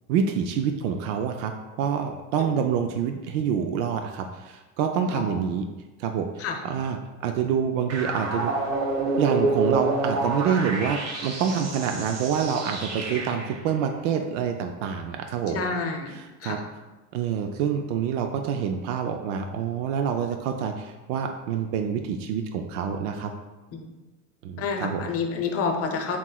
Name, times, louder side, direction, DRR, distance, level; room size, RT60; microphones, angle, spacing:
voice 1, 0.1-1.5 1.8-5.6 6.0-7.0 7.2-8.5 9.2-15.6 16.1-16.6 17.1-23.3 24.4-25.0, right 7 dB, 75° right, 5 dB, 0.5 m, -27 dB
sound 1, 7.9-13.6, right 2 dB, 40° right, 0.9 m, -28 dB
voice 2, 15.5-16.6 23.7-23.8 24.6-26.2, left 5 dB, 40° left, 3 dB, 0.7 m, -29 dB
5.8 x 3.0 x 2.3 m, 1.2 s
supercardioid pair, 95°, 38 cm